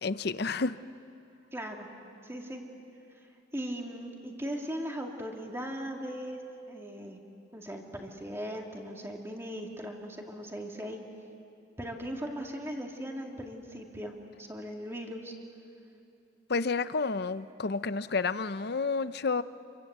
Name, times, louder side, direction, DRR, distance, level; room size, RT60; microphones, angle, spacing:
voice 1, 0.0-0.8 16.5-19.4, left 4 dB, 55° left, 14 dB, 0.7 m, -30 dB
voice 2, 1.5-1.9 2.2-2.6 3.5-6.4 6.7-7.2 7.5-11.0 11.8-15.3, equal, 15° right, 1 dB, 2.4 m, -38 dB
28.5 x 23.5 x 8.2 m, 2.7 s
head